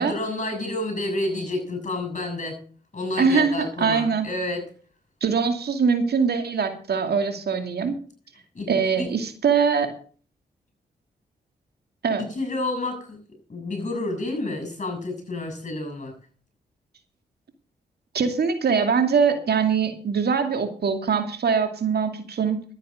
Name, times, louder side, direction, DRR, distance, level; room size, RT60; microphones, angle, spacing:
voice 1, 0.0-2.6 2.9-4.7 8.5-8.7 9.0-9.1 12.2-13.2 13.5-16.1, left 2 dB, 40° left, 7 dB, 7.1 m, -29 dB
voice 2, 3.2-4.3 5.2-7.9 8.7-9.9 12.0-12.2 18.1-22.6, right 6 dB, 65° right, 6 dB, 2.5 m, -22 dB
12.5 x 9.2 x 6.5 m, 0.43 s
supercardioid pair, 45°, 18 cm